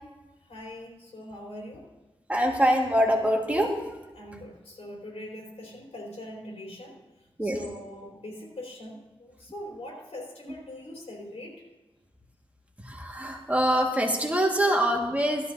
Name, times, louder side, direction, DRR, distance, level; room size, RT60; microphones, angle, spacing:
voice 1, 0.5-1.8 4.1-7.0 7.4-11.6, left 1 dB, 80° left, -2 dB, 3.9 m, -42 dB
voice 2, 2.3-4.0 7.4-7.6 12.8-15.5, equal, 15° right, 0 dB, 1.8 m, -24 dB
16.5 x 13.0 x 2.7 m, 1.1 s
wide cardioid pair, 85°, 10 cm